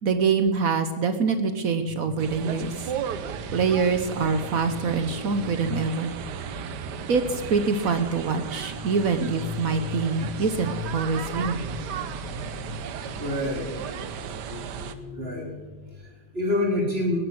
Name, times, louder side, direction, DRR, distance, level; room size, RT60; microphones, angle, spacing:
voice 1, 0.0-2.7 3.5-6.1 7.1-11.7, right 5 dB, 60° right, 9 dB, 1.2 m, -25 dB
sound 1, 2.2-15.0, right 8 dB, 75° right, 1.4 m, -35 dB
sound 2, 2.9-15.2, left 5 dB, 70° left, 2.3 m, -40 dB
voice 2, 13.2-13.9 14.7-14.8 15.1-17.2, left 1 dB, 35° right, 0 dB, 3.7 m, -28 dB
17.5 x 10.5 x 6.3 m, 1.3 s
omnidirectional pair, 1.9 m